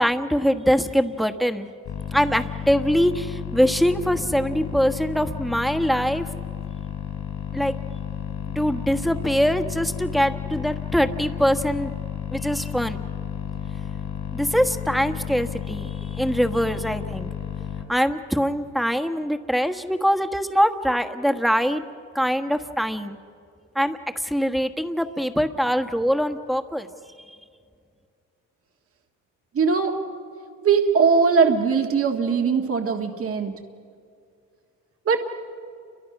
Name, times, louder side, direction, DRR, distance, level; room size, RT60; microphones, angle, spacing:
voice 1, 0.0-1.7 2.1-6.2 7.5-7.7 8.5-11.9 12.3-13.0 14.3-17.3 17.9-21.8 22.1-23.2 23.7-24.0 24.2-26.9, equal, ahead, 7 dB, 1.4 m, -23 dB
sound 1, 1.8-17.8, left 8 dB, 75° left, 4.3 m, -32 dB
voice 2, 29.5-30.0 30.6-33.5 35.0-35.2, right 5 dB, 50° right, 3 dB, 1.8 m, -20 dB
29.5 x 24.0 x 6.0 m, 2.4 s
cardioid pair, 90°, 30 cm